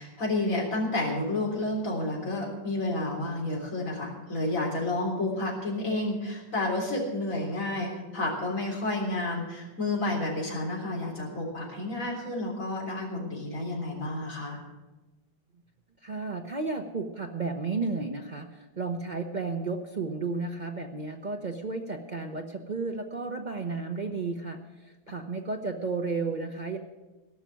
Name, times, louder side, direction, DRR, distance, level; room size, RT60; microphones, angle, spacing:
voice 1, 0.0-14.6, left 2 dB, 40° left, -2 dB, 3.9 m, -30 dB
voice 2, 16.0-24.6 24.8-26.8, right 4 dB, 80° right, 3 dB, 0.4 m, -33 dB
17.0 x 6.3 x 9.2 m, 1.1 s
omnidirectional pair, 2.1 m